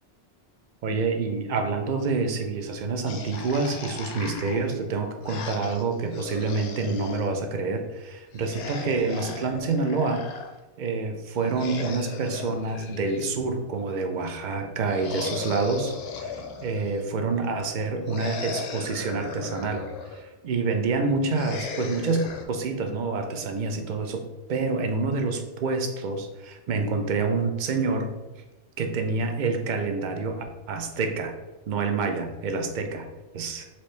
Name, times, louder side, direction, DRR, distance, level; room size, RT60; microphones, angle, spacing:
voice 1, 0.8-10.3 10.8-16.3 16.6-19.8 20.1-24.2 24.5-28.1 28.8-31.3 31.7-33.1 33.3-33.6, right 4 dB, 55° right, 5 dB, 0.6 m, -27 dB
sound 1, 3.0-7.3 8.3-10.5 11.4-13.7 14.9-17.1 18.1-20.2 21.3-22.4, left 5 dB, 70° left, 0.8 m, -37 dB
4.3 x 2.7 x 3.1 m, 1.1 s
omnidirectional pair, 1.1 m